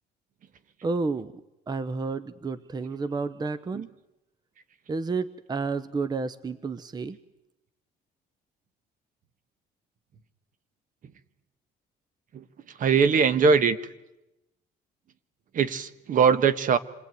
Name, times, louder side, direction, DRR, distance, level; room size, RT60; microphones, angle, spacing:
voice 1, 0.8-1.3 1.7-3.9 4.9-7.2, right 4 dB, 25° right, 15 dB, 0.8 m, -30 dB
voice 2, 12.8-13.8 15.5-16.8, right 6 dB, 50° right, 14 dB, 1.4 m, -21 dB
27.0 x 20.0 x 9.3 m, 0.95 s
cardioid pair, 110°, 17 cm